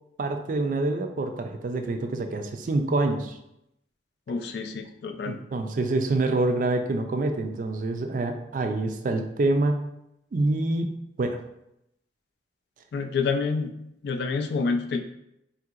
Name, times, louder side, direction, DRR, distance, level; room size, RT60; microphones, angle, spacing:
voice 1, 0.2-3.3 5.2-9.8 10.3-11.4, right 2 dB, 45° right, 5 dB, 0.3 m, -26 dB
voice 2, 4.3-5.4 12.9-13.7 14.0-15.0, left 4 dB, 65° left, 7 dB, 0.3 m, -28 dB
3.7 x 2.8 x 2.4 m, 0.82 s
head